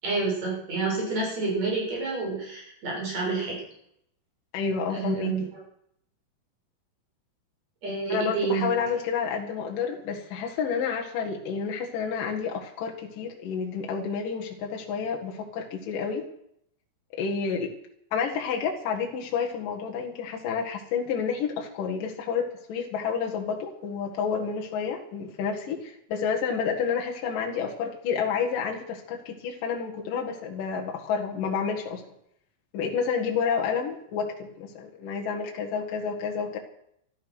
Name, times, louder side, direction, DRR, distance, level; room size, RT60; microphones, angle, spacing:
voice 1, 0.0-3.6 4.9-5.4 7.8-8.7, right 4 dB, 45° right, -3 dB, 7.9 m, -28 dB
voice 2, 4.5-5.4 8.1-16.3 17.1-17.7 18.1-32.0 32.7-36.6, left 6 dB, 65° left, 1 dB, 3.3 m, -30 dB
15.0 x 13.0 x 6.4 m, 0.72 s
omnidirectional pair, 4.4 m